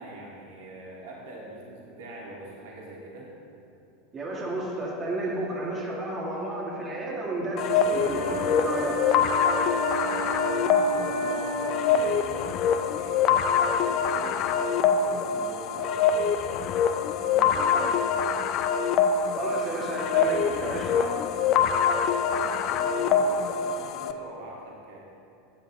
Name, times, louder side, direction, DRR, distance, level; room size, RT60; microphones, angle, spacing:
voice 1, 0.0-3.3 9.9-13.2 13.5-16.6 17.0-18.4 22.2-25.0, right 1 dB, 65° right, -4 dB, 2.3 m, -43 dB
voice 2, 4.1-9.1 19.3-21.2, right 1 dB, 25° right, -4 dB, 2.1 m, -32 dB
sound 1, 7.6-24.1, left 6 dB, 45° left, 0.5 m, -25 dB
sound 2, 7.9-11.8, right 1 dB, 70° left, 2.6 m, -33 dB
14.5 x 9.2 x 3.0 m, 2.6 s
figure-of-eight pair, 80°, 0 cm